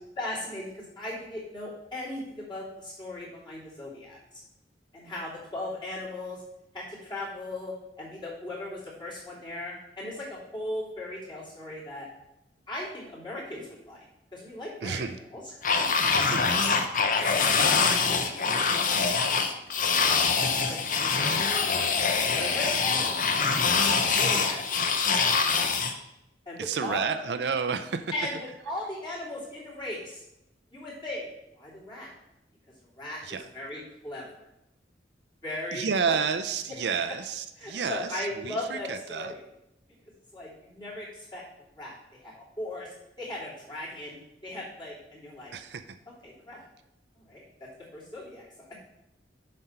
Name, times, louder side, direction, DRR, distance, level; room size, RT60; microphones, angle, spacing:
voice 1, 0.2-4.4 4.9-6.4 6.7-12.1 12.7-14.0 14.3-15.0 15.3-15.4 17.2-19.7 20.0-20.3 20.7-21.9 22.4-23.2 24.0-25.3 26.5-27.1 28.1-30.2 30.7-31.3 31.5-32.1 33.0-33.2 33.5-34.2 35.4-36.2 37.6-39.4 40.3-41.4 41.8-41.9 42.2-42.9 43.2-45.5 46.2-46.6 47.2-48.7, left 1 dB, 25° left, -6 dB, 2.8 m, -38 dB
voice 2, 14.8-15.2 16.1-16.6 26.6-28.0 33.2-33.5 35.7-39.3 45.5-45.9, right 6 dB, 70° right, 9 dB, 0.5 m, -31 dB
sound 1, 15.6-25.9, left 5 dB, 50° left, 0.7 m, -24 dB
7.4 x 4.4 x 5.6 m, 0.85 s
head